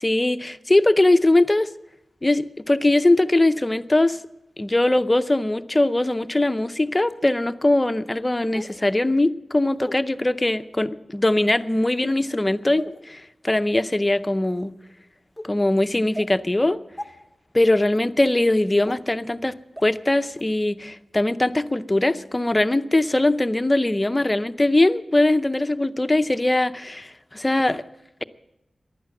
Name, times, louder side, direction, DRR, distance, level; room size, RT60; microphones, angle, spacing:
voice 1, 0.0-1.7 2.2-4.2 4.6-14.7 15.4-16.8 17.5-19.5 19.8-27.8, left 1 dB, 20° left, 11 dB, 0.6 m, -21 dB
sound 1, 6.0-6.1 7.0-7.1 8.5-8.8 9.8-9.9 10.7-11.0 11.9-12.2 12.8-13.0 13.7-13.8 14.4-14.6 15.4-15.5 16.1-16.3 17.0-17.1 17.9-18.0 18.8-18.9 19.8-19.9 20.4-20.5, equal, 10° right, 1.5 m, -37 dB
15.0 x 11.0 x 7.6 m, 0.92 s
wide cardioid pair, 90°, 0 cm